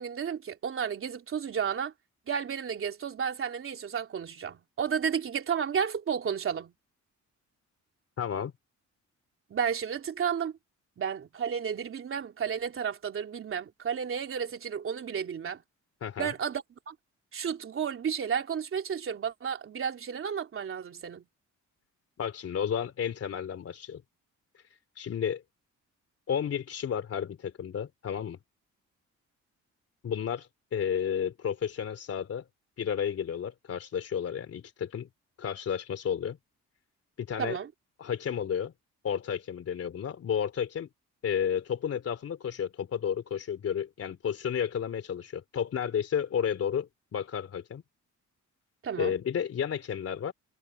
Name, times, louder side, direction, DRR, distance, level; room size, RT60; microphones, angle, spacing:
voice 1, 0.0-1.9 2.3-6.7 9.5-10.5 11.0-15.6 16.2-16.9 17.3-21.2 37.4-37.7 48.8-49.1, right 7 dB, 45° right, 3.3 m, -32 dB
voice 2, 8.2-8.5 16.0-16.3 22.2-24.0 25.0-25.4 26.3-28.4 30.0-32.4 32.8-35.1 35.4-36.4 37.2-37.6 38.0-38.7 39.0-40.9 41.2-47.8 49.0-50.3, left 8 dB, 50° left, 3.4 m, -32 dB
cardioid pair, 145°, 30 cm